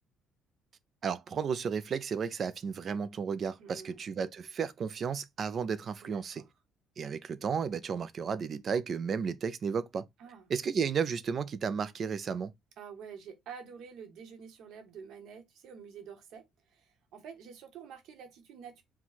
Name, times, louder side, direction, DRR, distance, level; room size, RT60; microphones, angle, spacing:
voice 1, 1.0-6.4 7.0-10.0 10.5-12.5, right 6 dB, 40° right, 0.4 m, -33 dB
voice 2, 3.6-4.0 6.0-6.5 10.2-10.5 12.8-18.8, right 7 dB, 70° right, 1.2 m, -48 dB
4.5 x 2.3 x 4.0 m
cardioid pair, 135°, 0 cm